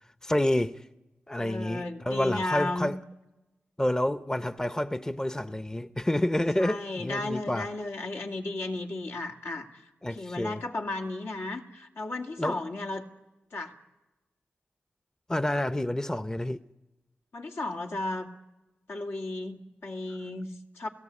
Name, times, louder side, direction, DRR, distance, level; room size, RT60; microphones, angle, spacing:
voice 1, 0.2-0.8 1.3-3.0 3.8-7.7 10.0-10.6 12.4-12.6 15.3-16.6, left 1 dB, 15° left, 0.7 m, -28 dB
voice 2, 1.4-2.9 6.6-13.1 13.5-13.8 17.3-18.3 18.9-20.9, left 2 dB, 75° left, 2.4 m, -34 dB
30.0 x 17.0 x 8.4 m
cardioid pair, 60°, 4 cm